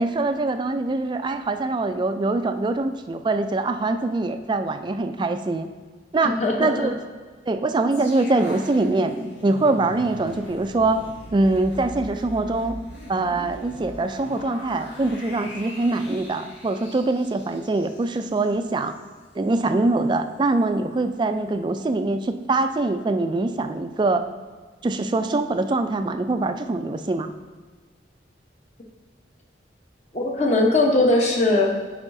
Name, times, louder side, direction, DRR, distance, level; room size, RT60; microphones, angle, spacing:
voice 1, 0.0-5.7 6.1-7.0 7.5-9.1 9.4-11.0 11.3-12.8 13.1-18.9 19.4-24.2 24.8-27.3, right 2 dB, 25° right, 8 dB, 0.3 m, -23 dB
voice 2, 6.2-6.9 30.1-31.7, left 2 dB, 40° left, 0 dB, 0.9 m, -20 dB
sound 1, 7.9-19.1 19.4-19.6, equal, 75° left, 2.0 m, -40 dB
9.7 x 4.9 x 2.6 m, 1.5 s
head